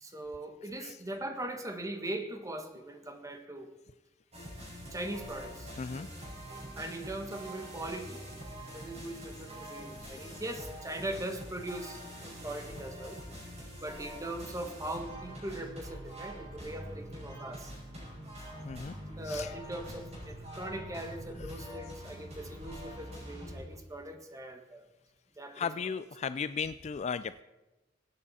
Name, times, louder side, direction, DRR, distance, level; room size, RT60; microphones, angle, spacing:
voice 1, 0.0-3.7 4.9-5.7 6.7-8.2 8.7-13.2 13.8-17.7 19.2-24.8 25.4-25.7, right 1 dB, 20° right, 6 dB, 1.3 m, -40 dB
sound 1, 4.3-23.6, equal, 35° right, 5.4 m, -45 dB
voice 2, 5.8-6.1 18.6-18.9 19.2-19.5 25.5-27.4, left 6 dB, 35° left, 14 dB, 0.3 m, -36 dB
24.0 x 8.7 x 4.2 m, 1.1 s
head